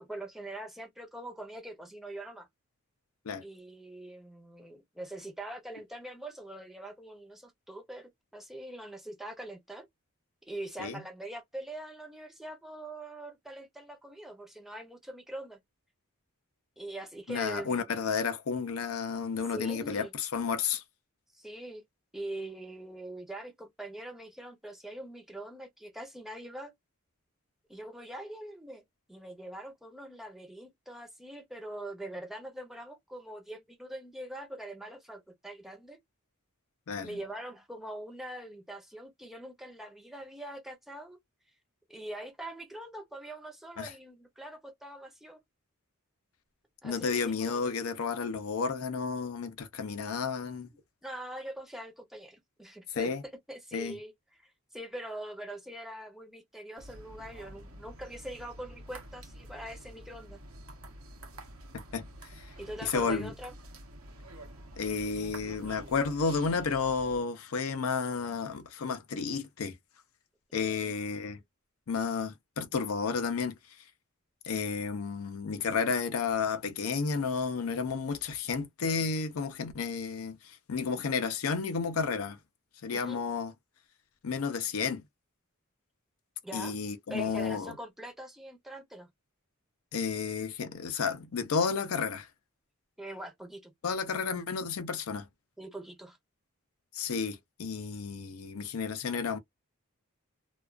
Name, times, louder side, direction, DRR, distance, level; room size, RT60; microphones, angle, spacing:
voice 1, 0.0-2.5 3.4-9.9 10.5-15.6 16.8-17.9 19.5-20.1 21.3-21.8 22.1-26.7 27.7-28.8 29.1-36.0 37.0-41.2 41.9-45.4 46.8-47.8 51.0-53.1 53.5-54.1 54.4-60.4 62.6-63.5 70.5-70.9 82.9-83.2 86.4-86.8 87.1-89.1 93.0-93.7 95.6-96.2, right 1 dB, ahead, 0.6 m, -43 dB
voice 2, 17.3-20.8 36.9-37.2 43.8-43.9 46.8-50.7 52.9-53.2 53.7-54.0 61.7-62.1 62.3-62.5 62.8-63.3 64.8-69.8 70.5-71.4 71.9-73.6 74.4-82.4 82.8-83.5 84.2-85.0 86.5-87.7 89.9-92.3 93.8-95.3 96.9-99.4, left 5 dB, 75° left, 0.5 m, -32 dB
sound 1, 56.8-67.2, right 1 dB, 70° right, 0.7 m, -48 dB
2.4 x 2.3 x 2.3 m
head